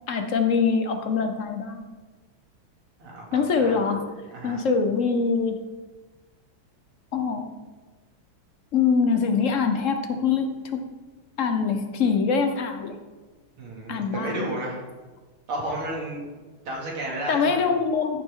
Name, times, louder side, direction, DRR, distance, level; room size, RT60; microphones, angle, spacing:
voice 1, 0.1-1.9 3.3-4.0 4.4-5.6 7.1-7.5 8.7-10.8 11.4-13.0 13.9-14.5 17.3-18.2, left 5 dB, 55° left, 6 dB, 0.8 m, -24 dB
voice 2, 3.0-3.7 4.3-4.6 13.6-14.8 15.5-16.2 16.6-17.7, right 1 dB, 80° right, -3 dB, 3.4 m, -32 dB
15.0 x 7.2 x 3.8 m, 1.3 s
omnidirectional pair, 2.3 m